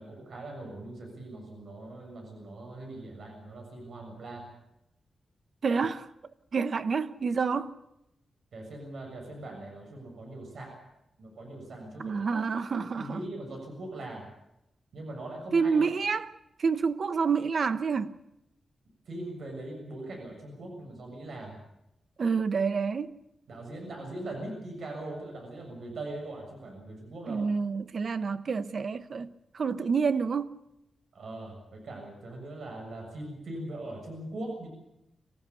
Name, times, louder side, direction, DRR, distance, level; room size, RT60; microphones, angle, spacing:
voice 1, 0.0-4.5 8.5-10.8 11.2-12.2 13.0-14.3 14.9-15.9 19.1-21.6 23.5-27.4 31.1-34.7, right 1 dB, 65° right, 7.1 m, -41 dB
voice 2, 5.6-6.1 6.5-7.7 12.0-13.2 15.5-16.3 16.6-18.2 22.2-23.1 27.3-30.5, right 5 dB, 50° right, 1.0 m, -28 dB
25.5 x 15.0 x 8.3 m
wide cardioid pair, 135°, 0 cm